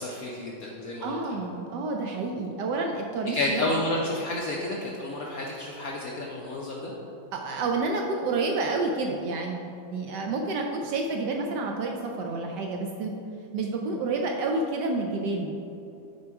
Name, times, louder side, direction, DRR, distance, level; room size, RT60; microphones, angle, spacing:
voice 1, 0.0-1.4 3.3-6.9, left 2 dB, 65° left, -2 dB, 0.8 m, -31 dB
voice 2, 1.0-3.7 7.3-13.1 13.5-15.6, right 3 dB, 75° right, 2 dB, 1.0 m, -29 dB
6.9 x 4.6 x 4.6 m, 2.8 s
omnidirectional pair, 2.2 m